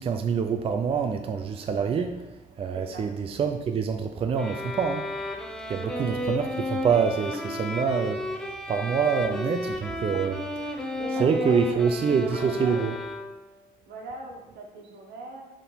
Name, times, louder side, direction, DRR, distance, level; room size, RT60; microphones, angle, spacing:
voice 1, 0.0-2.3 2.6-5.1 5.7-8.3 8.7-10.9 11.2-12.9, right 6 dB, 35° right, 5 dB, 0.4 m, -26 dB
sound 1, 4.4-13.6, left 1 dB, 5° left, 0.8 m, -33 dB
voice 2, 5.8-6.2 9.2-9.3 11.0-12.8 13.9-15.5, right 2 dB, 75° right, 2 dB, 1.4 m, -41 dB
8.0 x 3.6 x 4.1 m, 1.1 s
cardioid pair, 110°, 17 cm